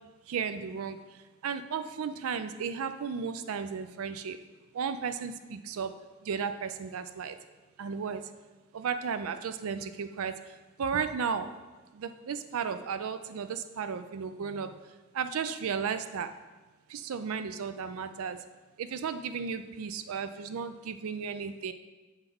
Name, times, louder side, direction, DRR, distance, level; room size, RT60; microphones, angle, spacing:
voice 1, 0.3-1.0 1.4-4.4 4.7-5.9 6.2-7.4 7.8-8.2 8.7-10.4 10.8-11.5 11.9-14.7 15.1-16.3 16.9-18.4 18.8-21.7, right 6 dB, 75° right, 10 dB, 0.4 m, -34 dB
7.1 x 3.8 x 5.3 m, 1.2 s
head